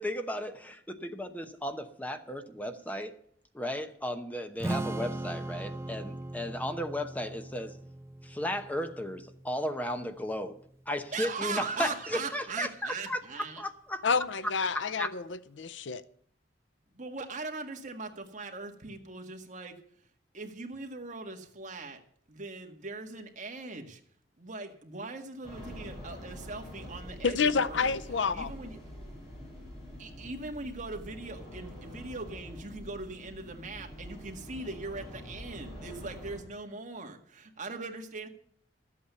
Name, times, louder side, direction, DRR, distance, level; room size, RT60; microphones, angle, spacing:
voice 1, 0.0-3.1 3.5-7.8 8.2-10.6 10.9-13.2 13.6-14.0 14.7-15.1, left 1 dB, 10° left, 0.9 m, -35 dB
Strum, 4.6-10.9, right 1 dB, 15° right, 0.4 m, -39 dB
voice 2, 11.1-13.6 16.9-19.8 20.3-22.0 22.3-24.0 24.4-27.9 28.3-28.7 30.0-38.3, right 3 dB, 40° right, 1.8 m, -40 dB
voice 3, 14.0-16.0 27.2-28.5, left 5 dB, 80° left, 0.6 m, -29 dB
sound 1, 25.4-36.4, equal, 35° left, 7.7 m, -45 dB
13.0 x 8.5 x 6.8 m
head